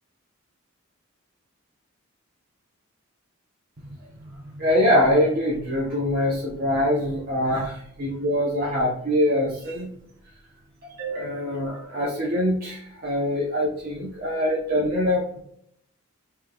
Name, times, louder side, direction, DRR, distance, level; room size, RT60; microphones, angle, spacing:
voice 1, 4.2-9.9 10.8-15.4, left 1 dB, 45° right, -4 dB, 0.7 m, -24 dB
5.6 x 3.1 x 2.3 m, 0.69 s
head